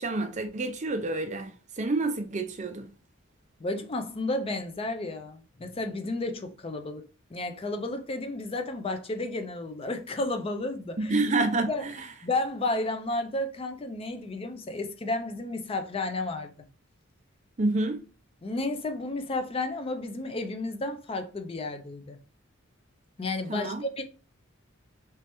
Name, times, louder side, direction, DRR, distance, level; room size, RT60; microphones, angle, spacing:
voice 1, 0.0-2.9 11.0-11.7 17.6-18.0 23.5-23.8, right 2 dB, 35° right, 0.5 m, -28 dB
voice 2, 3.6-7.0 7.3-11.2 11.7-11.8 12.2-16.7 18.4-22.2 23.2-24.0, left 2 dB, 25° left, 0.4 m, -32 dB
3.2 x 3.2 x 2.9 m
head